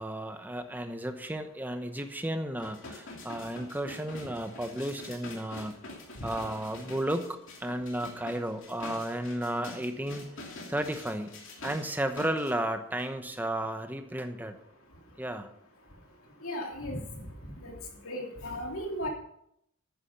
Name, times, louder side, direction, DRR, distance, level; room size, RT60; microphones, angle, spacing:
voice 1, 0.0-5.8 6.2-10.2 10.7-11.3 11.6-14.6 15.2-15.5, right 1 dB, 10° right, 7 dB, 0.9 m, -33 dB
sound 1, 2.6-12.5 13.0-13.1, left 2 dB, 65° left, 2.8 m, -46 dB
voice 2, 16.4-17.0 17.6-17.7 18.0-19.1, equal, 80° left, 1 dB, 2.9 m, -35 dB
10.5 x 9.8 x 5.7 m, 0.73 s
head